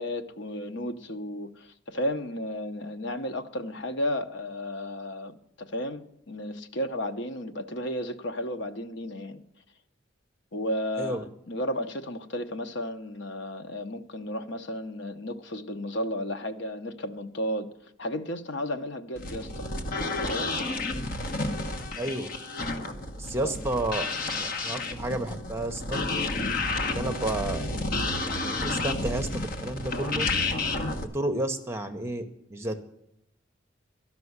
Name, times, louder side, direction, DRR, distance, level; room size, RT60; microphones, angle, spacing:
voice 1, 0.0-9.4 10.5-19.7 20.2-20.5 23.4-23.6 27.0-27.2, left 1 dB, 65° left, 0.9 m, -33 dB
sound 1, 19.2-31.0, left 2 dB, 50° left, 1.1 m, -31 dB
voice 2, 22.0-22.3 23.2-24.1 24.3-26.0 26.9-27.6 28.2-30.3 31.1-32.8, right 1 dB, 15° right, 0.9 m, -31 dB
12.5 x 6.0 x 9.5 m
head